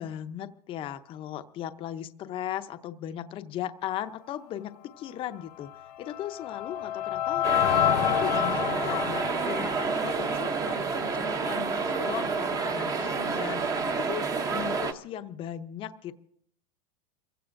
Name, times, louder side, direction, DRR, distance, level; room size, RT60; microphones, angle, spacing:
voice 1, 0.0-16.1, left 11 dB, 25° left, 10 dB, 0.6 m, -37 dB
sound 1, 5.7-10.8, left 11 dB, 85° left, 1.6 m, -29 dB
sound 2, 7.4-14.9, right 4 dB, 15° right, 0.7 m, -29 dB
29.0 x 16.0 x 2.6 m, 0.68 s
supercardioid pair, 150°, 20 cm